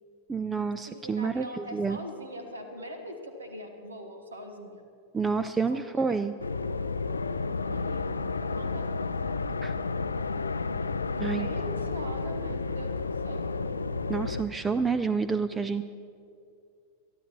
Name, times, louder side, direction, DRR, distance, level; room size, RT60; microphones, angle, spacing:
voice 1, 0.3-2.0 5.1-6.3 9.6-9.7 11.2-11.5 14.1-15.8, right 5 dB, 15° right, 13 dB, 0.4 m, -28 dB
voice 2, 0.9-4.8 5.7-6.2 7.7-8.1 8.5-9.9 11.2-13.7, equal, 75° right, 6 dB, 1.5 m, -42 dB
sound 1, 6.4-14.4, left 4 dB, 75° left, 0.4 m, -31 dB
22.5 x 13.0 x 3.0 m, 2.4 s
figure-of-eight pair, 90°, 0 cm